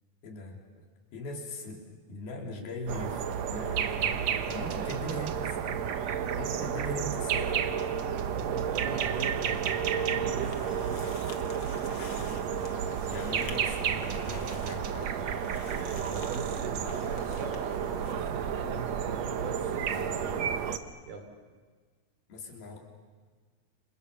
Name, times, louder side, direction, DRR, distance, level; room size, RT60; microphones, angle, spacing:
voice 1, 0.2-0.8 1.1-1.8 2.1-6.0 6.4-7.8 11.9-12.7 13.1-15.6 22.3-22.8, left 1 dB, 80° left, 1 dB, 5.5 m, -40 dB
sound 1, 2.9-20.8, right 8 dB, 65° right, 1.9 m, -31 dB
voice 2, 4.7-5.3 8.2-11.3 15.8-20.5 21.1-21.2, right 4 dB, 85° right, 4 dB, 5.8 m, -40 dB
sound 2, 10.4-18.1, left 5 dB, 45° left, 1.9 m, -48 dB
29.5 x 26.5 x 7.0 m, 1.5 s
omnidirectional pair, 4.3 m